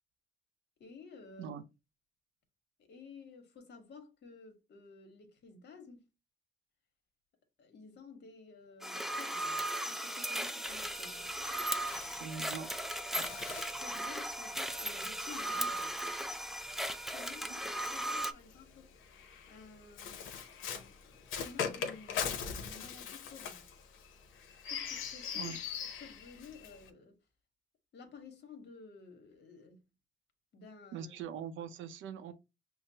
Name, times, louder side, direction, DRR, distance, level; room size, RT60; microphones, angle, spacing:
voice 1, 0.8-1.6 2.8-6.0 7.6-11.3 13.7-16.0 17.1-18.9 19.5-23.7 24.7-25.6 26.0-27.2 27.9-29.9 30.5-31.1, left 4 dB, 60° left, 1.2 m, -53 dB
sound 1, 8.8-18.3, right 1 dB, ahead, 0.4 m, -37 dB
sound 2, 10.5-19.0, right 2 dB, 25° right, 0.8 m, -56 dB
Bird, 10.6-17.2 18.1-26.9, left 7 dB, 80° left, 0.7 m, -42 dB
voice 2, 12.2-12.7 13.2-13.3 17.5-17.6 25.3-25.6 30.9-32.3, right 7 dB, 80° right, 0.6 m, -42 dB
5.7 x 2.1 x 2.7 m
cardioid pair, 90°, 20 cm